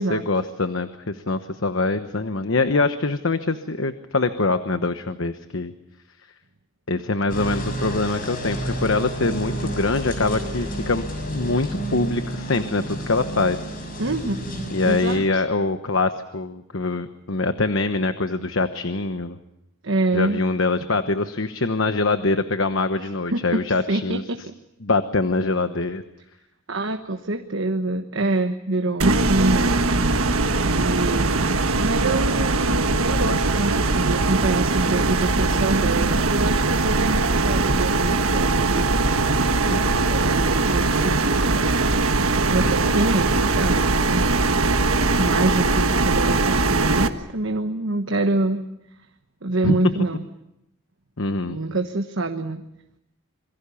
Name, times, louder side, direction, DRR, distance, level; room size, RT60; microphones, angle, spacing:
voice 1, 0.0-5.7 6.9-13.6 14.7-19.4 20.1-24.2 24.8-26.0 39.7-40.1 42.6-42.9 45.2-45.5 49.6-49.8 51.2-51.6, left 3 dB, 65° left, 9 dB, 1.1 m, -24 dB
sound 1, 7.3-15.2, right 1 dB, 40° left, 6.7 m, -30 dB
voice 2, 14.0-15.4 19.8-20.4 23.3-24.5 26.7-30.3 30.7-38.8 40.1-41.8 42.5-44.2 45.2-48.6 49.4-50.2 51.5-52.6, right 2 dB, 65° right, 5 dB, 1.2 m, -26 dB
sound 2, 29.0-47.1, right 3 dB, 85° right, 1.5 m, -21 dB
27.0 x 22.5 x 7.1 m, 0.84 s
head